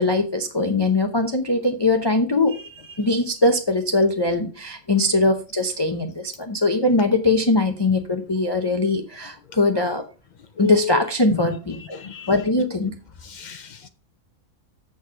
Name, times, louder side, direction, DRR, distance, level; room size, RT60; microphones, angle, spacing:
voice 1, 0.0-10.0 10.6-12.0 12.3-12.9, left 2 dB, 25° left, 0.6 m, -21 dB
voice 2, 11.9-12.3 13.2-13.9, left 8 dB, 85° left, 0.4 m, -34 dB
7.0 x 6.4 x 4.9 m
omnidirectional pair, 1.5 m